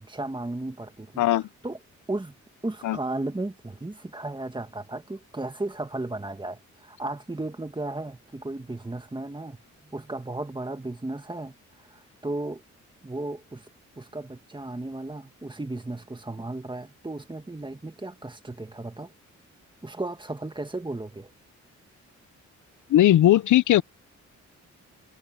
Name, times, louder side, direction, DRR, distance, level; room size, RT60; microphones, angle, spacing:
voice 1, 0.0-1.8 2.1-2.3 2.6-9.6 9.8-11.5 11.9-12.6 13.0-13.7 14.0-19.1 19.8-21.3, right 2 dB, 15° right, 2.0 m, -35 dB
voice 2, 22.9-23.8, left 13 dB, 80° left, 0.6 m, -18 dB
cardioid pair, 80°, 30 cm